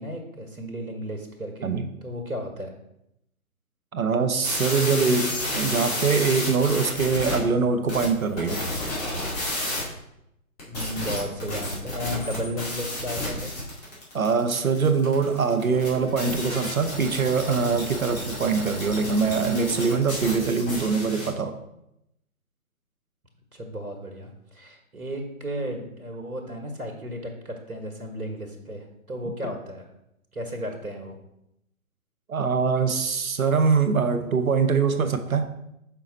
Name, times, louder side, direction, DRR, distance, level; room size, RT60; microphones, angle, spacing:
voice 1, 0.0-1.7 2.0-2.7 10.7-13.5 23.5-29.9 30.3-31.2, equal, 85° right, 3 dB, 1.4 m, -34 dB
voice 2, 3.9-8.6 14.1-21.6 32.3-35.5, right 5 dB, 70° right, 8 dB, 0.9 m, -23 dB
sound 1, 4.4-7.4 7.9-9.8 10.6-21.3, left 1 dB, 25° left, 2.4 m, -31 dB
5.9 x 5.8 x 4.0 m, 0.83 s
figure-of-eight pair, 140°, 43 cm